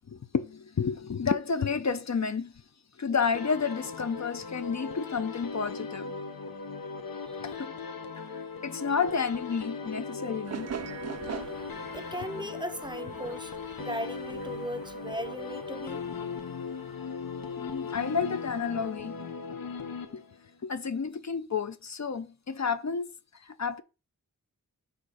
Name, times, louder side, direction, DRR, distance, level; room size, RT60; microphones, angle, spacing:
voice 1, 0.1-2.5 3.0-6.1 7.4-7.7 8.3-10.7 17.6-19.2 20.1-20.2 20.6-23.1 23.4-23.8, left 5 dB, 55° left, 0.7 m, -31 dB
sound 1, 3.3-20.6, left 5 dB, 90° left, 0.9 m, -38 dB
voice 2, 7.3-7.6 11.9-13.5 13.8-16.1, equal, 15° right, 0.8 m, -37 dB
sound 2, 10.4-16.9, right 8 dB, 50° right, 0.4 m, -43 dB
6.4 x 4.4 x 5.0 m
wide cardioid pair, 60°, 34 cm